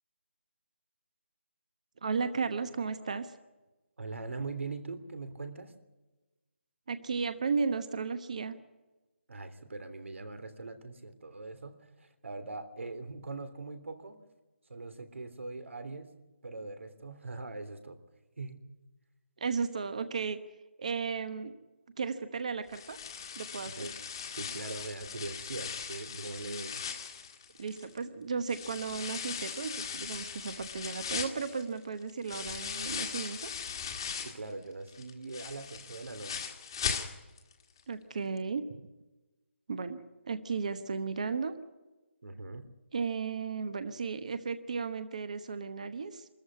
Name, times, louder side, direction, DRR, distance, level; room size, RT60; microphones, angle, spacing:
voice 1, 2.0-3.3 6.9-8.5 19.4-20.4 20.8-21.5 22.0-23.0 23.3-23.9 27.6-33.5 37.9-38.7 39.7-41.5 42.9-46.3, right 5 dB, 35° right, 11 dB, 1.0 m, -34 dB
voice 2, 4.0-5.7 9.3-14.2 14.7-16.1 16.4-18.0 18.4-18.6 23.7-23.9 24.4-26.8 34.2-36.5 42.2-42.6, right 3 dB, 80° right, 9 dB, 3.2 m, -41 dB
sound 1, 22.7-28.0 28.5-34.5 34.9-37.5 37.8-37.9 38.4-38.5, left 7 dB, 20° left, 1.5 m, -39 dB
24.5 x 14.0 x 9.6 m, 1.1 s
hypercardioid pair, 180°, 7 cm